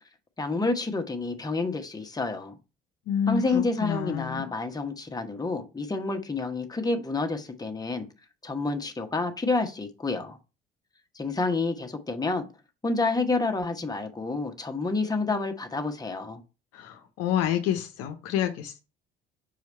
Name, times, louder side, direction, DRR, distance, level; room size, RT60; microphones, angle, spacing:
voice 1, 0.4-2.5 3.3-8.1 8.4-10.4 11.1-12.5 12.8-16.4, left 3 dB, 15° left, 1.1 m, -29 dB
voice 2, 3.1-4.5 16.7-18.8, left 10 dB, 55° left, 0.9 m, -28 dB
5.8 x 4.7 x 4.2 m
figure-of-eight pair, 55°, 29 cm